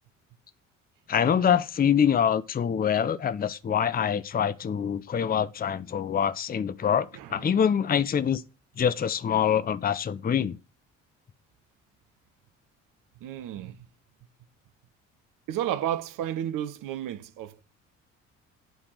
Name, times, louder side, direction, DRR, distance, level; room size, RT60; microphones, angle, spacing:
voice 1, 1.1-8.4 8.8-10.6, left 8 dB, 25° left, 0.6 m, -25 dB
voice 2, 7.1-7.5 13.2-13.9 15.5-17.6, right 11 dB, 55° right, 0.9 m, -32 dB
9.1 x 3.6 x 6.2 m
figure-of-eight pair, 50°, 39 cm